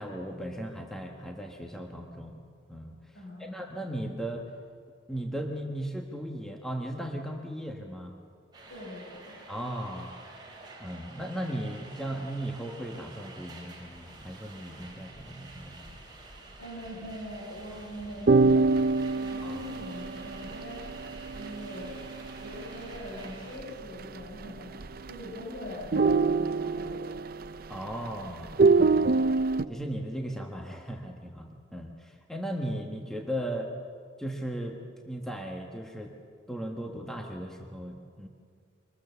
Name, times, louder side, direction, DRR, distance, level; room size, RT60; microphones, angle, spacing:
voice 1, 0.0-2.4 2.7-3.1 3.4-4.5 5.1-8.1 9.5-10.1 10.8-15.9 19.4-19.6 27.7-29.0 29.7-33.7 34.2-36.1 36.5-38.3, right 1 dB, 5° left, 1 dB, 1.3 m, -37 dB
voice 2, 3.1-3.7 8.7-9.4 16.6-18.7 19.2-20.8 21.3-22.0 22.4-24.7 25.0-27.1, left 1 dB, 65° left, -3 dB, 6.4 m, -42 dB
sound 1, 8.5-23.6, right 2 dB, 20° right, 3.9 m, -49 dB
sound 2, 18.3-23.3 23.6-23.7 24.0-24.4 24.7-25.4 25.7-28.1 28.5-29.6, right 3 dB, 50° right, 0.5 m, -25 dB
24.5 x 20.5 x 7.0 m, 2.2 s
head